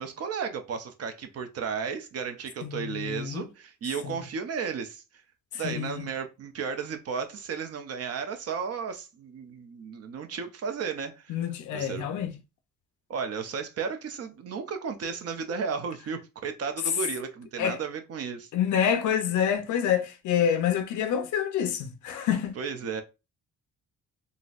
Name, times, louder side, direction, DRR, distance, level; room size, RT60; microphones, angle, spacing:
voice 1, 0.0-5.0 5.5-11.4 11.7-12.3 13.1-18.5 22.6-23.0, right 6 dB, 55° right, 0.6 m, -34 dB
voice 2, 2.6-3.5 4.0-4.2 5.6-6.1 11.3-12.3 17.6-17.8 18.5-22.5, left 9 dB, 75° left, 0.6 m, -27 dB
3.9 x 2.0 x 2.4 m
cardioid pair, 90°, 30 cm